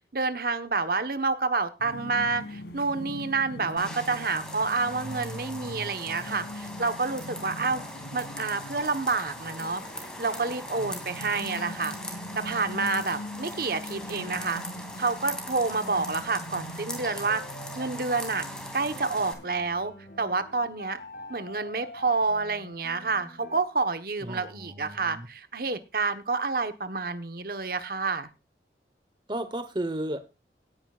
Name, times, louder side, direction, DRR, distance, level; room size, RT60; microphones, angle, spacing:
voice 1, 0.1-7.8 8.1-9.8 10.2-12.0 12.4-14.6 15.0-17.4 17.7-18.5 18.7-21.0 21.3-28.3, right 4 dB, 55° right, 11 dB, 1.1 m, -29 dB
sound 1, 1.8-19.5, equal, 75° left, 2.0 m, -42 dB
sound 2, 3.8-19.3, left 1 dB, 5° left, 2.6 m, -41 dB
sound 3, 17.0-23.6, left 1 dB, 55° left, 2.2 m, -46 dB
voice 2, 24.2-25.3 29.3-30.2, right 1 dB, 25° right, 11 dB, 1.0 m, -33 dB
17.5 x 9.9 x 2.4 m, 0.27 s
head